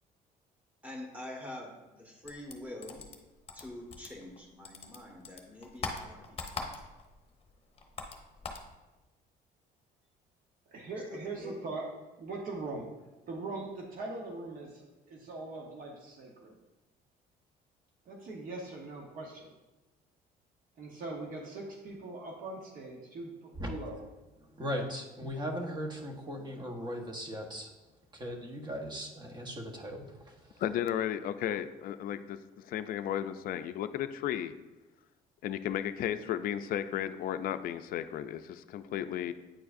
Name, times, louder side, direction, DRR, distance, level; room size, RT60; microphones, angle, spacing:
voice 1, 0.8-3.0 3.5-6.7 11.1-11.6, left 1 dB, 10° right, 0 dB, 1.5 m, -45 dB
sound 1, 2.2-4.4 4.6-7.1 7.4-8.7, left 4 dB, 35° left, 0.8 m, -41 dB
voice 2, 10.7-11.9 12.2-12.8 13.3-16.6 18.1-19.5 20.8-24.0, right 3 dB, 55° right, -1 dB, 1.0 m, -41 dB
voice 3, 24.6-27.7 28.1-30.6, equal, 25° right, 2 dB, 1.1 m, -38 dB
voice 4, 30.6-34.5 35.4-39.3, left 10 dB, 60° left, 10 dB, 0.4 m, -34 dB
9.0 x 4.6 x 2.5 m, 1.1 s
cardioid pair, 110°, 17 cm